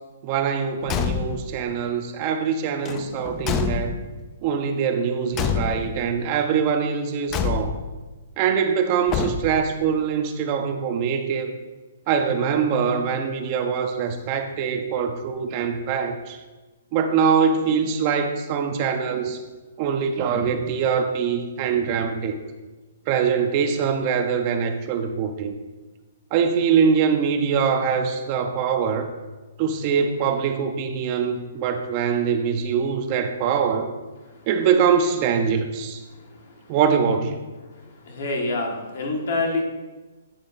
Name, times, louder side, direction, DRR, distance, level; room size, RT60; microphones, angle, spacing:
voice 1, 0.2-4.0 4.4-7.8 8.4-11.5 12.1-16.4 16.9-19.4 19.8-22.4 23.1-25.6 26.3-29.1 29.6-33.9 34.5-36.0 36.7-37.4, right 6 dB, 40° right, 7 dB, 0.5 m, -23 dB
Car / Truck / Slam, 0.8-1.6 2.8-4.3 5.3-6.1 7.3-8.0 9.1-9.8, left 7 dB, 25° left, 0.4 m, -27 dB
voice 2, 38.1-39.6, left 2 dB, 65° left, 1 dB, 1.3 m, -26 dB
8.6 x 2.9 x 4.0 m, 1.2 s
hypercardioid pair, 140°, 0 cm